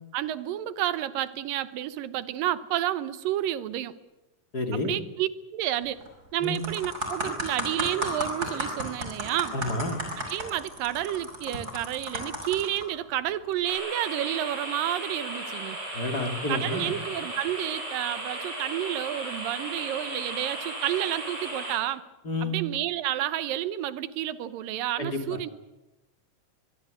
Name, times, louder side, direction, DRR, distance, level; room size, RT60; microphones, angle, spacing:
voice 1, 0.1-4.0 4.7-6.0 6.3-9.6 10.3-15.8 16.5-22.0 22.4-25.5, right 12 dB, 85° right, 15 dB, 2.7 m, -30 dB
voice 2, 4.5-4.9 6.4-6.6 9.5-10.0 15.9-16.9 22.2-22.6 25.0-25.2, left 2 dB, 30° left, 5 dB, 3.2 m, -30 dB
sound 1, 5.8-6.1 6.4-12.8 13.5-13.7, equal, 25° right, 6.1 m, -33 dB
sound 2, 13.6-21.8, right 1 dB, 45° right, 8.4 m, -36 dB
24.0 x 23.0 x 8.1 m, 1.0 s
omnidirectional pair, 3.9 m